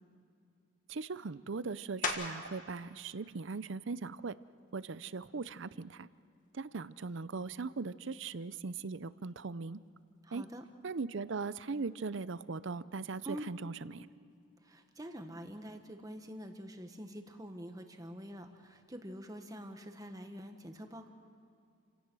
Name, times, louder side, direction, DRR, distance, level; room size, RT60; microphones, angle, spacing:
voice 1, 0.9-4.3 4.7-6.1 6.5-9.8 10.3-10.5 10.8-14.1, right 4 dB, 60° right, 16 dB, 0.6 m, -39 dB
sound 1, 2.0-2.6 3.2-7.6 8.1-13.3 13.6-19.2, left 4 dB, 40° left, 1.9 m, -47 dB
voice 2, 10.2-10.6 13.2-13.5 14.6-21.1, equal, 15° right, 5 dB, 1.4 m, -46 dB
29.5 x 17.0 x 6.2 m, 2.5 s
head